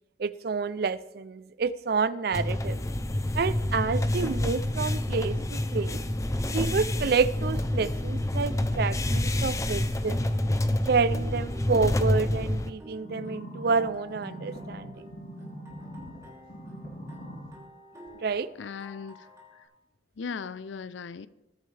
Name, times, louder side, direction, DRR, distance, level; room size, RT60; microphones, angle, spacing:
voice 1, 0.2-2.8 3.3-6.0 6.5-10.3 10.9-15.1 18.2-18.5, right 4 dB, 55° right, 0.4 m, -29 dB
sound 1, 2.3-12.7, left 1 dB, 15° left, 0.5 m, -28 dB
sound 2, 4.1-19.6, equal, 20° right, 3.0 m, -51 dB
sound 3, 13.0-16.2 16.5-17.5 18.1-18.2, equal, 50° left, 5.0 m, -41 dB
voice 2, 18.6-19.3 20.2-21.3, left 5 dB, 80° left, 0.5 m, -37 dB
20.5 x 8.8 x 3.3 m
head